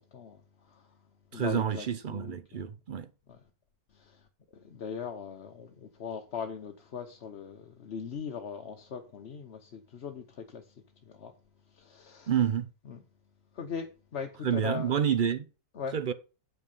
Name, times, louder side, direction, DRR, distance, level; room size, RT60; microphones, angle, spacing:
voice 1, 0.1-1.0 1.3-2.6 3.3-3.4 3.9-4.3 4.5-11.3 11.7-12.3 12.8-13.0 13.5-14.9 15.7-16.0, left 6 dB, 50° left, 1.1 m, -40 dB
voice 2, 1.3-3.1 12.3-12.7 14.4-15.5 15.9-16.1, right 8 dB, 55° right, 0.6 m, -28 dB
8.3 x 5.3 x 5.4 m
omnidirectional pair, 1.6 m